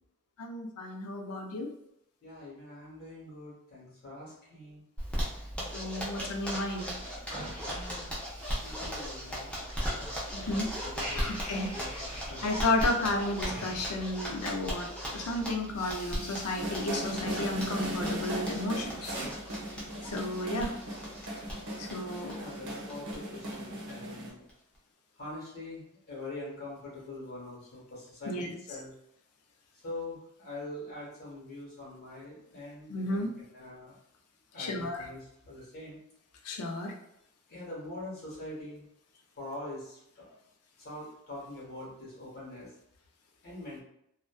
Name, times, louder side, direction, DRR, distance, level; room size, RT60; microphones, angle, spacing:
voice 1, 0.4-1.7 5.7-6.9 10.5-10.7 11.1-12.0 12.4-19.1 20.0-20.8 21.8-22.4 28.3-28.5 32.9-33.3 34.6-35.1 36.4-36.9, left 2 dB, 85° left, 3 dB, 0.5 m, -33 dB
voice 2, 2.2-4.8 7.6-8.2 8.6-10.4 10.8-11.3 11.7-12.6 22.2-24.4 25.1-28.9 29.8-33.3 33.5-33.9 34.5-36.0 37.5-38.8 39.4-40.4 40.8-42.7 43.4-43.8, left 2 dB, 45° left, -7 dB, 1.2 m, -44 dB
Zipper (clothing), 5.0-23.2 23.5-23.6 23.9-24.0 24.3-24.8, equal, 5° left, 0.5 m, -38 dB
sound 1, 6.6-10.2 10.5-14.6 15.2-15.4 15.6-17.1 17.4-17.9 18.3-19.3, right 1 dB, 25° right, 1.0 m, -46 dB
sound 2, 16.6-24.3, right 1 dB, 55° right, 0.7 m, -38 dB
2.5 x 2.2 x 2.2 m, 0.78 s
head